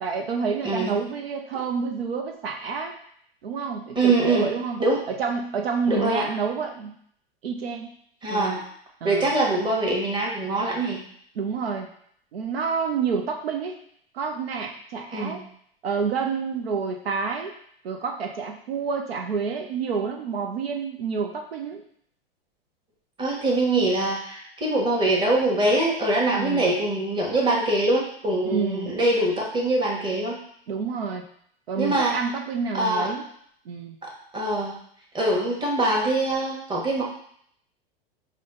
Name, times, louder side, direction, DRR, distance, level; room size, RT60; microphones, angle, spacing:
voice 1, 0.0-2.9 3.4-6.9 7.4-7.9 8.3-8.6 9.0-9.3 11.3-11.9 12.3-13.8 14.1-15.4 15.8-17.5 17.8-21.8 26.3-26.7 28.5-28.9 30.7-31.3 31.7-33.3 33.7-34.0, right 5 dB, 75° right, 3 dB, 0.6 m, -28 dB
voice 2, 0.6-0.9 3.9-4.5 4.8-5.0 5.9-6.3 8.2-8.6 9.0-11.0 15.1-15.4 23.2-30.4 31.8-32.2 32.7-33.1 34.0-34.8 35.1-37.0, right 2 dB, 15° right, -3 dB, 1.2 m, -23 dB
4.9 x 2.2 x 3.8 m, 0.65 s
hypercardioid pair, 95°, 30 cm